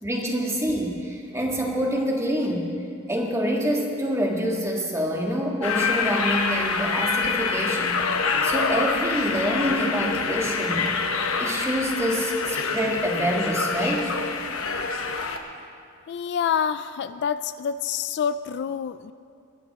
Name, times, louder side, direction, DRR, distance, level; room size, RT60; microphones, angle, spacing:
voice 1, 0.0-2.7 3.1-8.0 8.4-10.9 11.4-14.1, equal, 15° right, 0 dB, 1.7 m, -26 dB
sound 1, 5.6-15.4, left 4 dB, 80° left, 1.0 m, -26 dB
sound 2, 7.4-7.9 9.1-9.5 10.6-10.9 11.6-11.7 12.2-12.3 12.7-12.8 13.8-14.0 15.2-15.5, right 4 dB, 50° right, 1.0 m, -42 dB
voice 2, 16.1-19.1, left 7 dB, 55° left, 14 dB, 0.3 m, -27 dB
21.5 x 9.9 x 4.1 m, 2.3 s
head